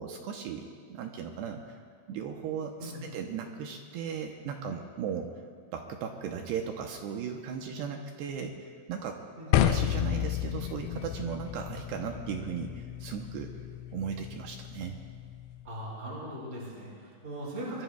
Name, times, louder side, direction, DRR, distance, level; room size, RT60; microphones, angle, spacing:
voice 1, 0.0-1.8 2.1-5.3 5.7-9.2 9.5-13.5 13.9-15.0, right 7 dB, 80° right, 3 dB, 2.5 m, -37 dB
sound 1, 9.5-15.7, left 11 dB, 90° left, 3.1 m, -32 dB
voice 2, 15.6-17.8, right 1 dB, 15° right, -5 dB, 4.6 m, -39 dB
24.0 x 21.0 x 2.3 m, 2.2 s
omnidirectional pair, 5.4 m